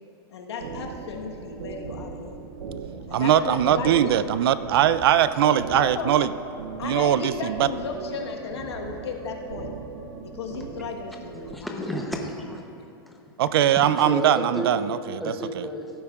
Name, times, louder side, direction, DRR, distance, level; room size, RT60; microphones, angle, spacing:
voice 1, 0.3-2.4 3.1-4.2 5.4-6.1 6.8-9.8 10.2-12.1, left 5 dB, 85° left, 1 dB, 1.4 m, -35 dB
sound 1, 0.6-11.5, right 5 dB, 85° right, 0.8 m, -39 dB
Musical instrument, 2.8-11.6, right 3 dB, 50° right, 1.1 m, -47 dB
voice 2, 3.1-6.3 6.8-7.7 13.4-15.3, right 10 dB, 65° right, 14 dB, 0.4 m, -21 dB
voice 3, 11.3-12.6 13.1-13.2 13.8-14.7 15.2-15.9, equal, ahead, 0 dB, 0.8 m, -32 dB
16.0 x 8.6 x 2.4 m, 2.6 s
supercardioid pair, 150°, 13 cm